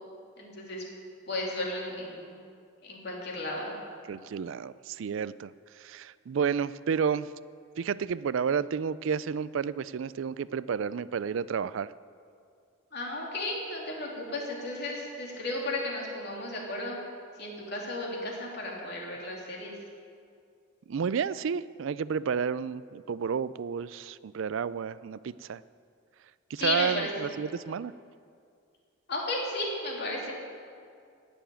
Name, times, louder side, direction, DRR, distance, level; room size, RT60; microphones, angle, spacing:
voice 1, 0.4-0.8 1.3-2.3 2.8-3.7 12.9-17.0 17.4-19.7 26.6-27.3 29.1-30.3, left 2 dB, 50° left, -2 dB, 3.0 m, -34 dB
voice 2, 4.1-7.3 7.8-11.9 20.9-25.6 26.5-27.9, right 6 dB, 65° right, 17 dB, 0.3 m, -31 dB
16.0 x 7.1 x 8.9 m, 2.3 s
head